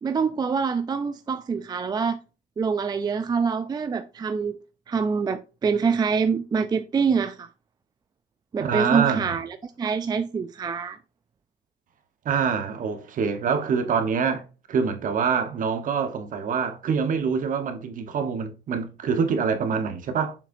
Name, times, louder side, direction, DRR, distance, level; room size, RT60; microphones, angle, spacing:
voice 1, 0.0-2.2 2.6-4.6 4.9-7.5 8.5-11.0, right 5 dB, 25° right, 0.4 m, -25 dB
voice 2, 8.6-9.3 12.2-14.4 14.7-20.4, right 6 dB, 50° right, 1.2 m, -25 dB
7.1 x 5.4 x 2.7 m
cardioid pair, 110°, 17 cm